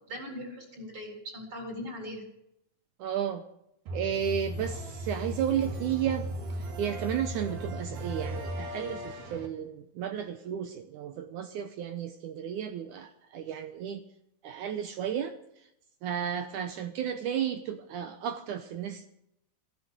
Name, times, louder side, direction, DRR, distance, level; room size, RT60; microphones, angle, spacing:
voice 1, 0.1-2.3, left 1 dB, 35° right, 1 dB, 4.5 m, -40 dB
voice 2, 3.0-3.4 3.9-6.3 6.6-14.0 14.4-15.4 16.0-19.1, right 9 dB, 75° right, 9 dB, 1.9 m, -33 dB
sound 1, 3.9-9.5, right 1 dB, 60° right, 3.5 m, -37 dB
15.0 x 11.5 x 6.7 m, 0.79 s
omnidirectional pair, 4.4 m